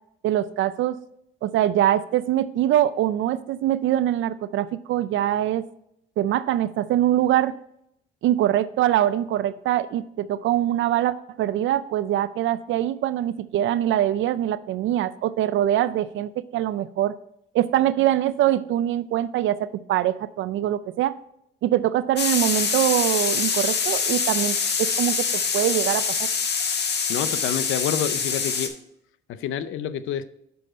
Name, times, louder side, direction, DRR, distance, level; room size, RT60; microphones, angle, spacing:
voice 1, 0.2-1.0 1.4-5.6 6.2-7.5 8.2-17.1 17.5-21.2 21.6-26.3, right 12 dB, 75° right, 14 dB, 0.4 m, -23 dB
sound 1, 22.2-28.7, left 5 dB, 60° left, 1.4 m, -25 dB
voice 2, 27.1-28.7 29.4-30.2, left 9 dB, 85° left, 13 dB, 0.6 m, -28 dB
7.0 x 6.3 x 4.4 m, 0.75 s
cardioid pair, 90°, 20 cm